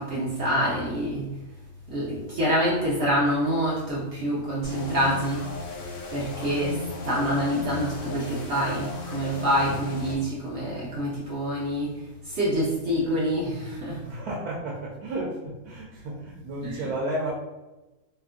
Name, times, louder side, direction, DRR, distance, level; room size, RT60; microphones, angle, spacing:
voice 1, 0.0-1.4 1.9-5.6 6.0-14.1 16.6-16.9, equal, 60° right, -6 dB, 0.8 m, -26 dB
sound 1, 4.6-10.2, left 3 dB, 85° left, 1.2 m, -36 dB
voice 2, 14.0-17.3, right 1 dB, 80° right, -3 dB, 1.0 m, -32 dB
2.8 x 2.3 x 2.4 m, 1.1 s
omnidirectional pair, 1.6 m